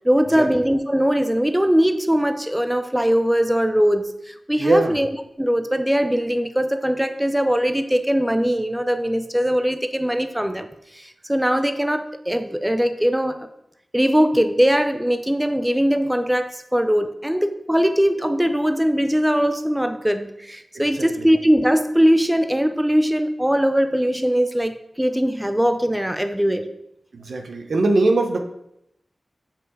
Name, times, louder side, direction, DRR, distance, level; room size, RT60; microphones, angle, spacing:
voice 1, 0.0-5.1 5.4-10.7 10.9-13.5 13.9-26.7, equal, 10° right, 8 dB, 0.6 m, -20 dB
voice 2, 4.6-5.0 20.9-21.3 27.1-28.4, right 2 dB, 80° right, 5 dB, 0.8 m, -21 dB
7.1 x 5.5 x 4.1 m, 0.80 s
cardioid pair, 50°, 0 cm